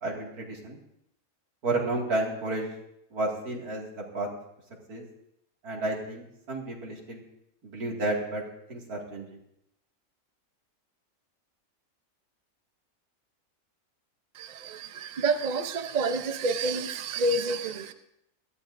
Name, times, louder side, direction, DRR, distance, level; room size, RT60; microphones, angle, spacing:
voice 1, 0.0-0.8 1.6-2.7 3.1-3.9 4.1-4.3 4.9-5.0 5.6-7.2 7.7-8.4 8.7-9.4, right 2 dB, 80° right, -1 dB, 2.7 m, -31 dB
voice 2, 14.4-17.9, right 3 dB, 45° right, 8 dB, 0.6 m, -29 dB
21.0 x 13.5 x 2.6 m, 0.78 s
omnidirectional pair, 1.6 m